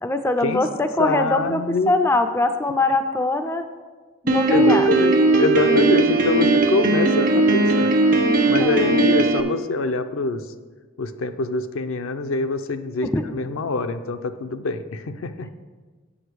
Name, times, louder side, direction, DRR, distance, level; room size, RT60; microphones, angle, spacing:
voice 1, 0.0-3.7 4.2-4.9 8.6-9.0 13.0-13.2, left 2 dB, 10° left, 8 dB, 0.3 m, -22 dB
voice 2, 1.0-1.9 4.3-7.9 8.5-10.4 11.0-15.5, left 3 dB, 75° left, 8 dB, 0.5 m, -25 dB
Piano, 4.3-9.4, right 2 dB, 45° right, 0.7 m, -18 dB
8.7 x 5.0 x 6.3 m, 1.4 s
head